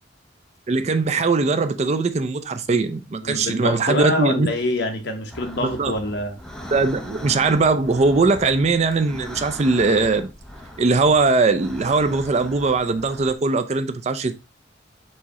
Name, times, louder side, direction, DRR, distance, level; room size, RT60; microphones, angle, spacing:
voice 1, 0.7-4.5 5.6-5.9 6.7-10.3 10.8-14.4, right 3 dB, 35° right, 0.4 m, -20 dB
voice 2, 3.2-6.4, left 1 dB, 65° left, 1.1 m, -25 dB
sound 1, 5.3-13.3, left 1 dB, 5° left, 0.6 m, -39 dB
4.7 x 2.8 x 4.1 m
head